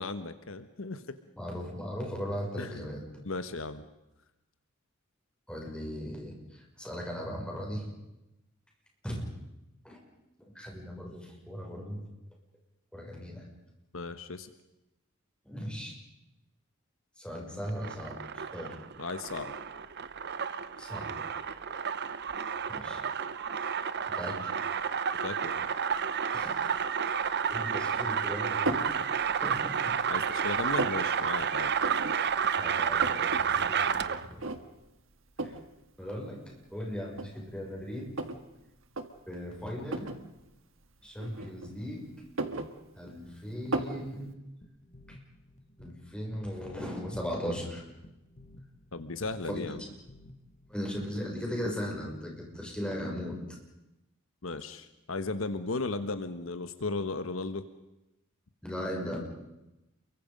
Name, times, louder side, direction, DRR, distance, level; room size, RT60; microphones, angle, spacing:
voice 1, 0.0-1.1 2.6-2.8 3.2-3.8 13.9-14.5 19.0-19.5 25.2-25.7 30.1-31.7 48.9-49.8 54.4-57.6, left 3 dB, 75° left, 10 dB, 1.2 m, -36 dB
voice 2, 1.3-3.0 5.5-7.9 9.0-9.2 9.8-10.0 10.5-12.0 12.9-13.4 15.4-16.0 17.2-18.8 20.8-21.1 22.7-23.0 24.1-24.4 26.3-26.6 27.5-28.9 29.3-29.9 30.6-30.7 32.6-34.4 35.4-35.5 36.0-38.1 39.3-40.1 41.0-42.1 42.9-44.4 45.1-45.2 45.8-47.8 50.7-53.4 58.6-59.2, equal, 5° left, -1 dB, 6.4 m, -38 dB
sound 1, 17.7-34.3, right 7 dB, 55° right, 0.8 m, -31 dB
sound 2, 28.7-29.0 29.5-30.2 30.4-31.0 31.8-32.2 32.5-32.6 32.8-33.4 33.8-33.9 34.4-34.9 35.4-35.7 36.5-36.6 37.1-38.4 38.8-39.1 39.9-40.2 41.2-41.8 42.2-43.2 43.7-44.0, right 2 dB, 70° right, 1.7 m, -34 dB
sound 3, 44.6-51.5, left 1 dB, 35° left, 1.8 m, -55 dB
29.0 x 23.0 x 5.3 m, 0.93 s
head